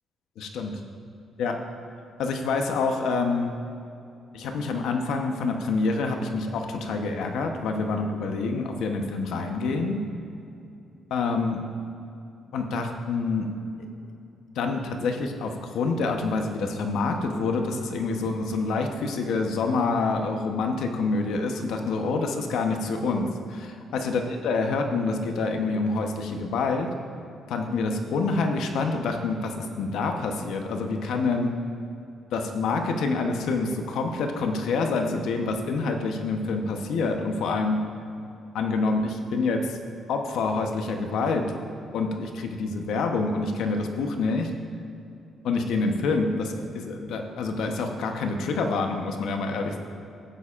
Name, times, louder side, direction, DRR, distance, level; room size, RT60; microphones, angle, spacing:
voice 1, 0.4-0.8 1.4-1.6 2.2-3.5 4.3-10.0 11.1-11.6 12.5-13.5 14.5-26.9 27.5-31.5 32.3-37.8 38.5-39.8 40.1-41.4 41.9-44.5 45.4-49.8, left 3 dB, 80° left, 4 dB, 0.9 m, -27 dB
15.0 x 8.3 x 2.5 m, 2.6 s
cardioid pair, 90°, 0 cm